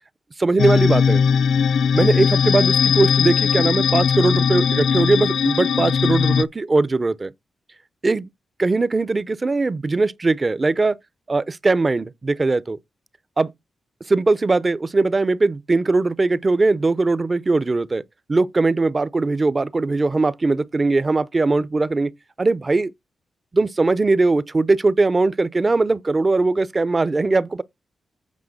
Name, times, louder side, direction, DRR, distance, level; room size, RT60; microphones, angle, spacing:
voice 1, 0.4-1.2 1.9-7.3 8.0-8.3 8.6-11.0 11.3-12.8 13.4-13.5 14.1-18.0 18.3-22.1 22.4-22.9 23.5-27.6, right 3 dB, 25° right, 0.6 m, -20 dB
sound 1, 0.6-6.4, left 6 dB, 80° left, 0.4 m, -19 dB
8.4 x 4.5 x 6.5 m
wide cardioid pair, 130°, 0 cm